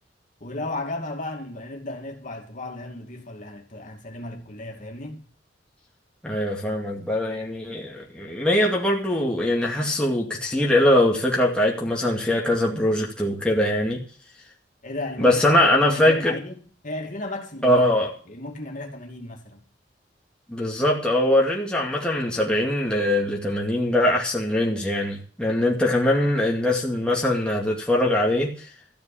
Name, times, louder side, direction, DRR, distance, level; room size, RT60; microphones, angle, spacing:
voice 1, 0.4-5.2 14.8-15.4 15.7-19.6, left 2 dB, 45° left, 2.6 m, -35 dB
voice 2, 6.2-14.0 15.2-16.4 17.6-18.1 20.5-28.5, left 1 dB, 5° left, 2.3 m, -22 dB
14.0 x 6.9 x 8.5 m
head